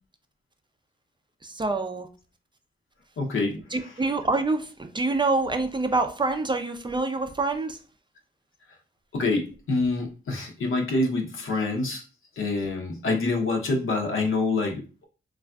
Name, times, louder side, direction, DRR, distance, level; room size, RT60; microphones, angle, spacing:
voice 1, 1.4-2.1 3.7-7.8, right 3 dB, 25° right, 0.4 m, -26 dB
voice 2, 3.2-3.6 9.1-12.0 12.4-15.1, left 3 dB, 80° left, 0.7 m, -26 dB
3.3 x 2.4 x 2.3 m
cardioid pair, 60°, 20 cm